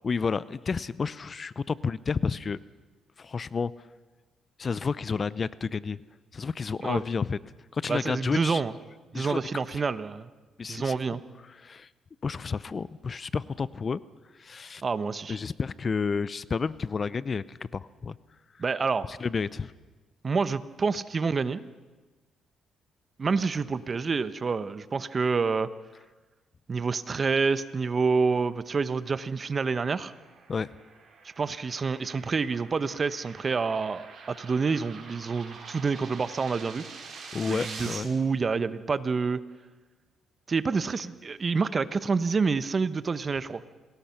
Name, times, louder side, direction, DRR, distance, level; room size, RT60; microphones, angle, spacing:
voice 1, 0.0-2.6 3.2-3.7 4.6-6.0 6.3-7.4 7.7-8.6 9.1-9.6 10.6-11.0 11.6-11.9 12.2-14.0 14.4-14.8 15.3-18.2 19.1-19.7 30.5-30.7 37.3-38.1, left 5 dB, 40° left, 18 dB, 0.6 m, -30 dB
voice 2, 7.9-8.7 9.1-10.3 10.7-11.2 14.8-15.4 18.6-19.1 20.2-21.6 23.2-25.7 26.7-30.1 31.4-36.9 37.4-39.4 40.5-43.6, right 4 dB, 35° right, 14 dB, 1.0 m, -28 dB
sound 1, 29.2-38.0, right 5 dB, 55° right, 5.8 m, -46 dB
27.5 x 20.0 x 5.9 m, 1.2 s
cardioid pair, 90°, 0 cm